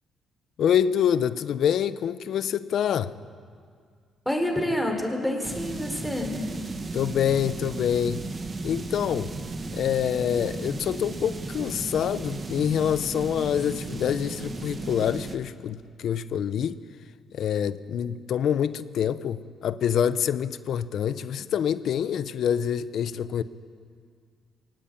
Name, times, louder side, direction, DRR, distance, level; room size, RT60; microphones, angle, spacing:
voice 1, 0.6-3.1 6.9-8.2 8.6-9.3 9.7-16.8 17.3-23.4, left 9 dB, 70° left, 14 dB, 0.8 m, -26 dB
voice 2, 4.2-6.4, left 1 dB, ahead, 2 dB, 4.5 m, -27 dB
sound 1, 5.4-15.4, right 3 dB, 35° right, 2.0 m, -35 dB
22.5 x 18.0 x 9.0 m, 2.1 s
cardioid pair, 90°, 0 cm